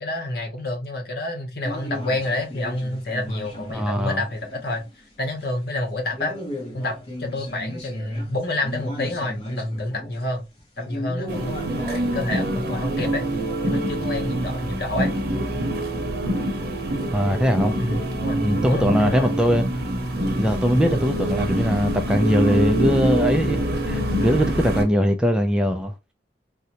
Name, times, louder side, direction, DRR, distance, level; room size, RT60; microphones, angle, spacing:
voice 1, 0.0-4.8 5.2-6.4 6.7-10.4 10.8-13.3 13.6-15.1 17.8-19.3 20.9-21.0 24.2-24.6, left 1 dB, 60° left, 0.8 m, -28 dB
sound 1, 1.6-5.1 5.4-5.5 6.1-12.1, equal, 35° left, 1.1 m, -36 dB
voice 2, 3.7-4.2 17.1-17.8 18.4-19.7 20.4-25.9, equal, 5° right, 0.3 m, -21 dB
sound 2, 11.3-24.9, right 1 dB, 60° right, 0.7 m, -25 dB
3.7 x 2.1 x 2.8 m
head